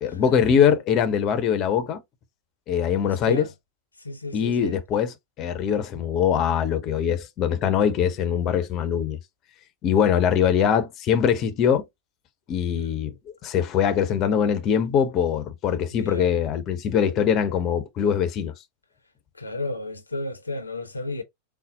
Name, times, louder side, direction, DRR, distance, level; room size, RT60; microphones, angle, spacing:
voice 1, 0.0-2.0 2.7-3.5 4.3-9.2 9.8-11.9 12.5-13.1 13.4-18.5, left 8 dB, 35° left, 0.7 m, -22 dB
voice 2, 3.0-3.5 4.0-4.7 12.7-13.0 16.0-16.3 19.4-21.2, left 2 dB, 80° left, 0.7 m, -32 dB
4.1 x 2.0 x 3.8 m
figure-of-eight pair, 90°, 0 cm